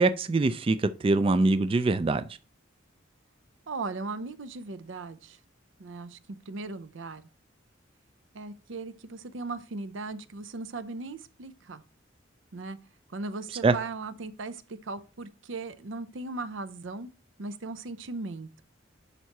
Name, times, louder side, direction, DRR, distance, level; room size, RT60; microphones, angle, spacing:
voice 1, 0.0-2.2 13.6-13.7, right 3 dB, 30° right, 0.3 m, -23 dB
voice 2, 3.7-5.4 5.8-6.2 6.5-7.2 8.3-11.8 12.5-12.8 13.1-17.1 17.4-18.6, right 3 dB, 80° right, 0.6 m, -38 dB
11.0 x 4.6 x 3.0 m
head